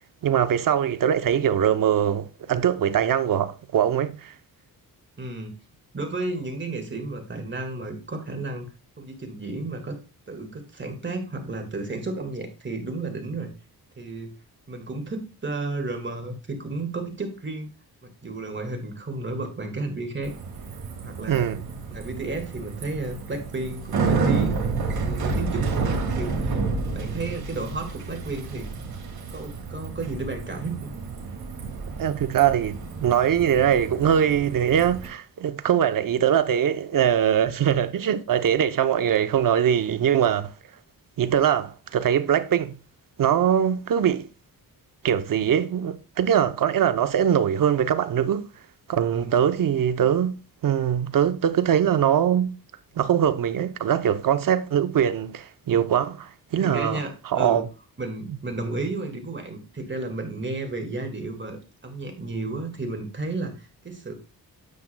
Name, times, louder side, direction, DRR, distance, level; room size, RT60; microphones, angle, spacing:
voice 1, 0.2-4.3 21.3-21.6 32.0-40.5 41.2-42.7 43.2-44.3 45.0-48.5 48.9-50.4 50.6-52.6 53.0-57.7 58.3-58.4, right 9 dB, 60° right, 0.7 m, -22 dB
voice 2, 5.2-5.5 5.9-8.7 9.0-10.0 10.3-13.5 14.0-14.3 14.7-17.7 18.0-20.3 21.0-21.6 21.9-24.6 25.0-26.6 26.9-28.7 29.3-30.9 49.1-49.4 56.6-57.6 58.0-61.6 61.8-64.1, right 2 dB, 30° right, 1.8 m, -32 dB
Bicycle, 20.2-35.1, right 4 dB, 75° right, 2.0 m, -30 dB
9.4 x 7.1 x 2.2 m
wide cardioid pair, 120°, 37 cm